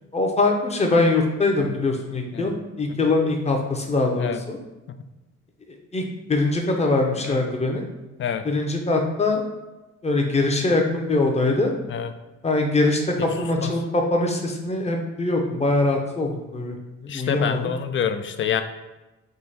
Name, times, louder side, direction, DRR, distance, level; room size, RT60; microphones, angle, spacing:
voice 1, 0.1-4.6 5.9-6.0 6.3-7.9 8.4-9.4 10.0-11.8 12.4-16.8 17.0-17.7, left 2 dB, 20° left, 2 dB, 0.7 m, -22 dB
voice 2, 13.4-13.7 17.1-18.6, left 8 dB, 40° left, 9 dB, 0.4 m, -27 dB
3.8 x 2.8 x 4.1 m, 1.1 s
cardioid pair, 90°, 30 cm